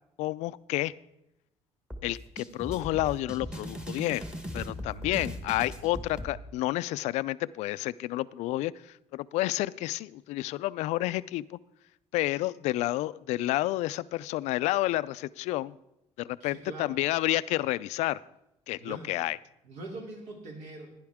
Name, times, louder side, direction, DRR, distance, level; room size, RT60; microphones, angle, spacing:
voice 1, 0.2-0.9 2.0-4.2 4.5-8.7 9.1-11.6 12.1-15.7 16.2-18.2 18.7-19.4, left 17 dB, 80° left, 18 dB, 0.4 m, -30 dB
sound 1, 1.9-6.3, equal, 5° right, 1.2 m, -39 dB
voice 2, 16.4-17.0 18.8-19.1 19.6-20.9, right 2 dB, 75° right, 1 dB, 3.2 m, -42 dB
16.5 x 10.0 x 3.6 m, 0.84 s
cardioid pair, 145°, 11 cm